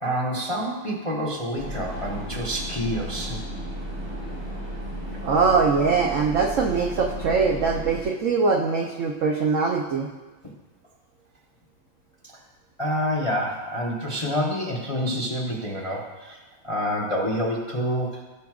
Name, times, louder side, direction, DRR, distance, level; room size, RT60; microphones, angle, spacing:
voice 1, 0.0-3.4 12.2-12.3 12.8-16.4 16.6-18.2, equal, 30° left, -2 dB, 0.5 m, -27 dB
sound 1, 1.6-8.0, equal, 60° right, 3.2 m, -34 dB
voice 2, 5.2-10.1, right 4 dB, 85° right, 1 dB, 0.6 m, -22 dB
16.0 x 6.1 x 2.4 m, 1.2 s
omnidirectional pair, 2.1 m